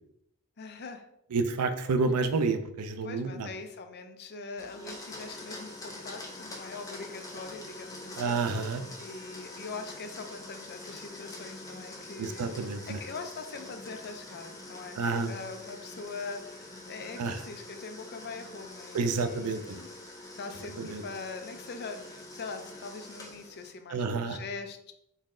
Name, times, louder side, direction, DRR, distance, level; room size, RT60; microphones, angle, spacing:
voice 1, 0.6-1.1 3.0-8.4 9.0-15.0 15.3-19.9 20.3-24.9, left 4 dB, 45° left, 6 dB, 0.5 m, -42 dB
voice 2, 1.3-3.5 8.2-8.8 12.2-13.0 15.0-15.3 17.2-17.4 18.9-19.8 20.8-21.0 23.9-24.4, right 4 dB, 90° right, 10 dB, 0.5 m, -29 dB
Domestic sounds home sounds, 4.6-23.8, left 2 dB, 15° left, 0.8 m, -45 dB
4.0 x 3.1 x 3.7 m, 0.78 s
head